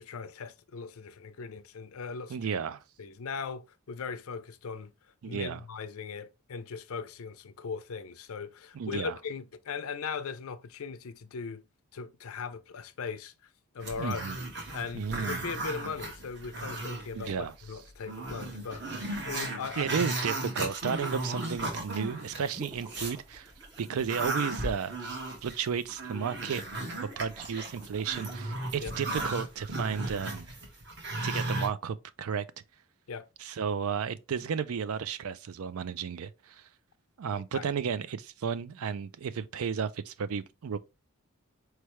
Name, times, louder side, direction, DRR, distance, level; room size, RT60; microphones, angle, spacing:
voice 1, 0.0-2.4 3.0-4.9 5.2-11.6 11.9-13.5 13.7-14.2 14.7-19.9 28.8-28.9 33.1-33.3 37.5-37.6, left 5 dB, 80° left, 0.5 m, -39 dB
voice 2, 2.3-2.8 5.2-5.6 8.7-9.1 14.0-14.4 14.9-15.4 17.1-17.5 19.8-23.5 23.8-26.7 27.2-30.5 31.2-32.4 33.4-36.6 37.2-40.8, right 6 dB, 80° right, 0.4 m, -33 dB
Growling, 13.8-17.3 17.7-17.8 18.1-23.2 23.6-31.7, right 2 dB, 50° right, 1.3 m, -36 dB
sound 1, 22.5-24.4 27.0-28.4, right 1 dB, 20° right, 0.5 m, -51 dB
4.6 x 3.2 x 3.0 m
head